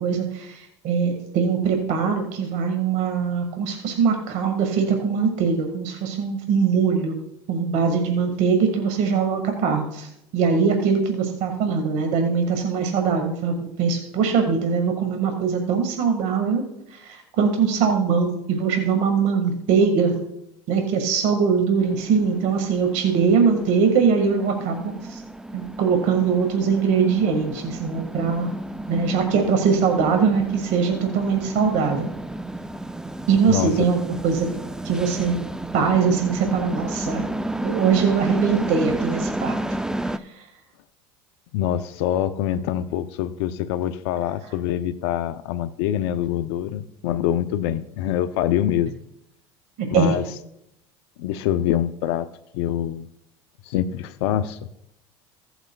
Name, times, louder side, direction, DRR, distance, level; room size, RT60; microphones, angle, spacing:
voice 1, 0.0-7.2 7.5-16.6 16.9-20.2 20.7-25.2 25.5-28.5 28.9-32.1 33.3-34.5 34.8-35.4 35.7-37.3 37.6-39.6 40.1-40.4 49.9-50.2, right 6 dB, 65° right, 4 dB, 1.7 m, -22 dB
sound 1, 21.8-40.2, right 1 dB, 5° right, 0.5 m, -32 dB
voice 2, 33.5-33.9 41.5-48.9 49.9-50.2 51.2-52.3 52.5-53.1 53.6-54.6, left 11 dB, 80° left, 10 dB, 0.5 m, -25 dB
16.0 x 7.9 x 2.3 m, 0.81 s
supercardioid pair, 90°, 14 cm